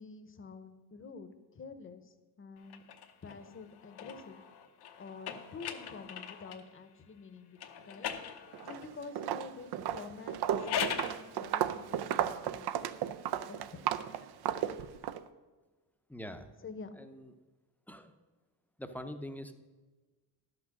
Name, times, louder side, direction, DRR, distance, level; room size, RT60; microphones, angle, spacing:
voice 1, 0.0-2.8 3.2-4.4 5.0-7.6 7.9-8.1 8.6-12.7 13.5-13.8 16.6-16.9, left 4 dB, 30° left, 10 dB, 0.8 m, -48 dB
sound 1, 2.7-6.7 7.6-8.9 10.4-11.2, left 7 dB, 80° left, 1.0 m, -40 dB
Walk footsteps, 8.5-8.8 9.2-15.2, right 10 dB, 80° right, 0.6 m, -34 dB
voice 2, 16.1-16.5 17.0-17.3 17.9-18.1 18.8-19.5, equal, 5° left, 8 dB, 0.6 m, -43 dB
11.5 x 6.1 x 6.5 m, 1.3 s
cardioid pair, 130°, 39 cm